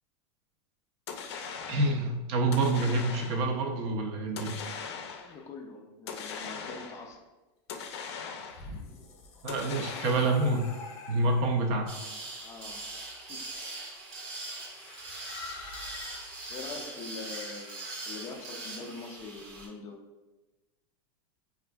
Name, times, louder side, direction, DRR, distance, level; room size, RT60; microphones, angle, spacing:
sound 1, 1.1-2.0 2.5-3.6 4.4-5.4 6.1-7.1 7.7-8.8 9.5-10.6, left 6 dB, 85° left, 0.4 m, -40 dB
voice 1, 1.7-4.6 9.4-10.7 11.1-11.9, right 2 dB, 45° right, 3 dB, 0.5 m, -27 dB
voice 2, 5.2-7.2 12.4-12.8 13.3-13.4 16.5-20.0, left 4 dB, 20° left, 1 dB, 0.4 m, -43 dB
sound 2, 8.3-11.8 12.7-13.1 14.7-18.4, left 3 dB, 50° left, 0.7 m, -47 dB
sound 3, 11.9-19.7, right 2 dB, 65° right, 0.9 m, -41 dB
4.2 x 2.4 x 2.2 m, 1.1 s
supercardioid pair, 155°, 14 cm